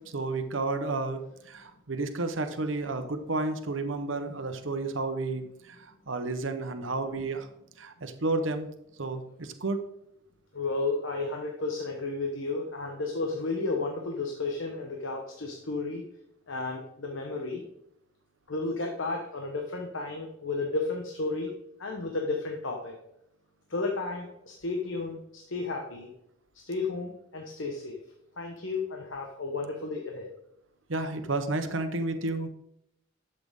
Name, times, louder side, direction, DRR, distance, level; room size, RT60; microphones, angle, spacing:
voice 1, 0.0-7.5 7.8-8.7 9.0-9.8 30.9-32.5, right 2 dB, 75° right, 8 dB, 1.0 m, -31 dB
voice 2, 10.5-16.0 16.5-17.6 18.5-21.5 21.8-22.9 23.7-26.1 26.7-28.0 28.4-30.3, left 3 dB, 75° left, 1 dB, 1.2 m, -33 dB
12.0 x 7.9 x 3.7 m, 0.81 s
head